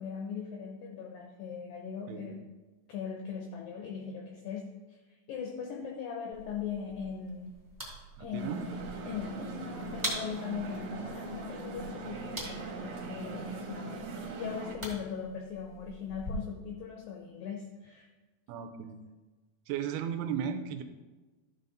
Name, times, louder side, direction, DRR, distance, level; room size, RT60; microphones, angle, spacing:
voice 1, 0.0-2.5 2.9-7.6 8.2-8.7 9.1-18.1, left 7 dB, 75° left, 1 dB, 2.1 m, -40 dB
sound 1, 6.3-16.3, right 1 dB, 15° right, 2.0 m, -44 dB
voice 2, 8.2-8.6 18.5-19.0 19.7-20.8, right 8 dB, 85° right, 8 dB, 2.6 m, -35 dB
sound 2, 8.4-14.8, right 3 dB, 60° right, 2.1 m, -40 dB
13.5 x 5.6 x 3.9 m, 1.2 s
omnidirectional pair, 4.7 m